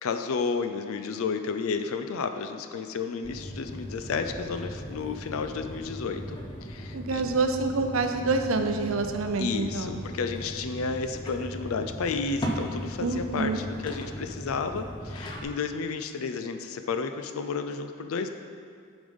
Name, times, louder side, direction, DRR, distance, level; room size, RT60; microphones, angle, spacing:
voice 1, 0.0-7.2 9.4-18.3, left 5 dB, 75° left, 8 dB, 0.4 m, -32 dB
sound 1, 3.2-15.4, equal, 20° left, 0.7 m, -38 dB
voice 2, 6.9-10.0 13.0-13.6, right 3 dB, 70° right, 6 dB, 0.6 m, -27 dB
7.3 x 5.2 x 5.2 m, 2.2 s
head